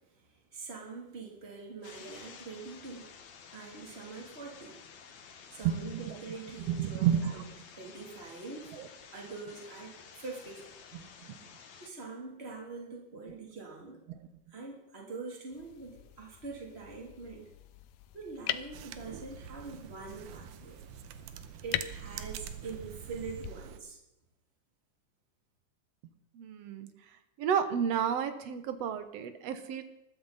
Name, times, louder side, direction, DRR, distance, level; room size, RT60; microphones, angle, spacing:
voice 1, 0.0-3.1 3.5-4.8 5.5-7.4 7.8-8.7 9.1-10.7 11.8-14.1 14.5-17.5 18.1-20.8 21.6-24.0, right 4 dB, 20° right, -1 dB, 3.0 m, -44 dB
sound 1, 1.8-11.9, left 6 dB, 60° left, 2.5 m, -52 dB
voice 2, 5.6-6.1 6.7-7.5 8.8-8.9 10.9-11.4 14.1-14.2 26.4-26.9 27.4-29.8, right 8 dB, 65° right, 10 dB, 1.9 m, -31 dB
sound 2, 15.5-23.5, left 13 dB, 90° left, 2.3 m, -43 dB
sound 3, 18.7-23.8, right 10 dB, 80° right, 2.4 m, -45 dB
20.5 x 13.5 x 4.2 m, 0.88 s
omnidirectional pair, 3.7 m